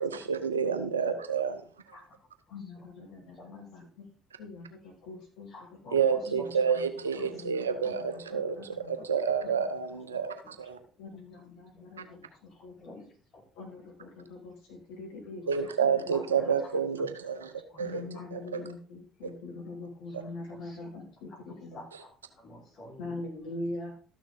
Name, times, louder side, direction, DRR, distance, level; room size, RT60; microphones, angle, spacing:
voice 1, 0.0-1.6 5.9-10.8 15.5-18.0 18.3-18.6 20.1-20.2 21.9-22.0, right 6 dB, 90° right, 9 dB, 0.9 m, -29 dB
voice 2, 0.6-0.9 2.5-4.0 4.4-5.5 6.3-6.8 7.2-7.8 8.1-9.1 10.1-10.2 11.0-13.0 13.6-15.4 15.8-16.8 17.8-21.8 23.0-23.9, left 2 dB, 70° left, 0 dB, 3.7 m, -43 dB
voice 3, 5.5-5.9 12.8-13.0 16.1-16.2 17.0-17.1 17.7-17.8 20.5-20.8 21.7-22.1 22.4-23.2, left 2 dB, 50° left, -3 dB, 5.5 m, -48 dB
13.0 x 6.4 x 3.9 m, 0.41 s
hypercardioid pair, 55°, 0 cm